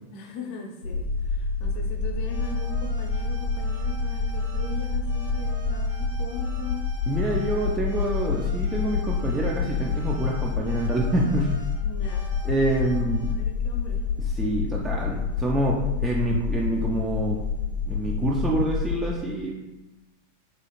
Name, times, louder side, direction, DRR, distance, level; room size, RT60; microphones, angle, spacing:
voice 1, 0.1-6.9 11.8-12.3 12.8-14.0, left 5 dB, 45° left, 2 dB, 0.5 m, -39 dB
sound 1, 0.8-19.0, left 5 dB, 90° left, 0.5 m, -28 dB
sound 2, 2.2-13.3, equal, 70° right, 0.8 m, -46 dB
voice 2, 7.1-11.5 12.4-13.3 14.4-17.4 17.9-19.6, right 2 dB, 15° right, -3 dB, 0.3 m, -26 dB
2.7 x 2.3 x 2.8 m, 1.0 s
figure-of-eight pair, 90°, 0 cm